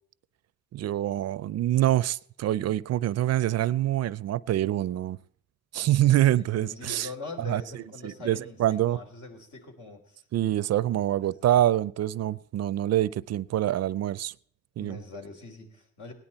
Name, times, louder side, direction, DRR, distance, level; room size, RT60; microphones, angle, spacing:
voice 1, 0.7-5.2 5.7-7.1 7.5-7.6 8.0-9.0 10.3-14.3 14.8-15.0, right 13 dB, 60° right, 0.5 m, -25 dB
voice 2, 5.8-10.3 11.2-11.5 14.8-16.1, left 3 dB, 70° left, 3.6 m, -43 dB
17.5 x 10.5 x 4.2 m
cardioid pair, 90°, 30 cm